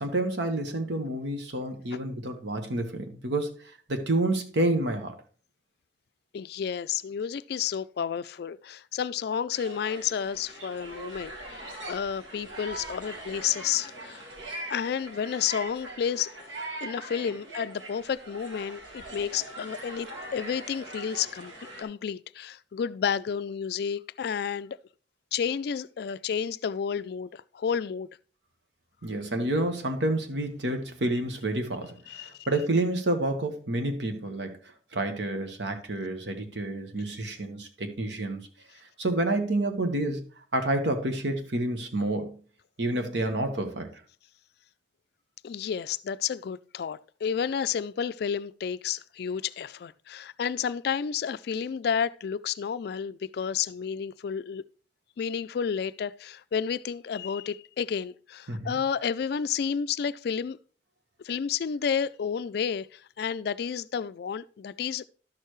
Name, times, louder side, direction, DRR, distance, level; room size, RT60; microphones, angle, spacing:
voice 1, 0.0-5.2 29.0-38.4 39.0-40.2 40.5-42.3 42.8-44.0 58.5-58.8, right 1 dB, 70° right, 1.2 m, -29 dB
voice 2, 6.3-14.3 14.7-16.3 16.8-21.5 21.8-24.8 25.3-28.1 32.1-32.5 45.4-54.6 55.2-60.6 61.2-65.1, left 7 dB, 60° left, 0.3 m, -31 dB
sound 1, 9.5-21.8, right 1 dB, 85° right, 2.1 m, -42 dB
11.5 x 6.6 x 3.1 m
head